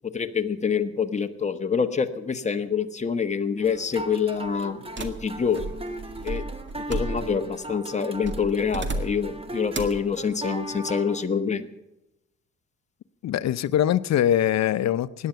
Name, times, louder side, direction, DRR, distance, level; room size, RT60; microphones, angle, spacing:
voice 1, 0.0-5.7 6.2-6.4 6.8-11.7, left 6 dB, 25° left, 6 dB, 1.2 m, -26 dB
sound 1, 3.6-11.3, right 2 dB, 20° right, 1.5 m, -38 dB
sound 2, 5.0-7.5 8.2-9.3 9.7-10.1, right 2 dB, 40° right, 1.9 m, -33 dB
voice 2, 13.2-15.3, left 11 dB, 60° left, 16 dB, 0.7 m, -23 dB
17.0 x 10.5 x 6.9 m, 0.93 s
cardioid pair, 90°, 30 cm